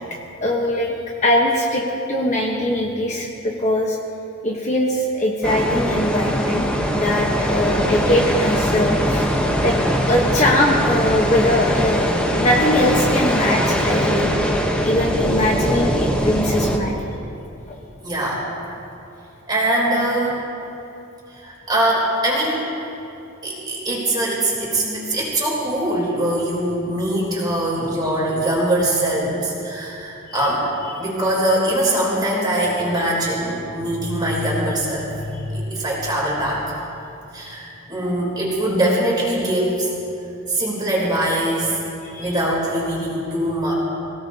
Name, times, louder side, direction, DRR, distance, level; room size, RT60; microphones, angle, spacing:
voice 1, 0.4-0.9 1.2-4.0 4.4-9.3 9.6-9.8 10.1-14.3 14.8-17.0 17.7-17.8 30.3-30.4 42.0-42.4, left 1 dB, 35° left, -1 dB, 1.2 m, -21 dB
sound 1, 5.4-16.8, equal, 5° left, 1.1 m, -21 dB
voice 2, 18.0-18.5 19.5-20.4 21.3-22.7 23.4-30.7 31.0-36.8 37.3-39.9 40.5-41.8 42.2-43.7, right 1 dB, 20° right, -5 dB, 3.8 m, -22 dB
25.5 x 17.0 x 2.9 m, 2.8 s
head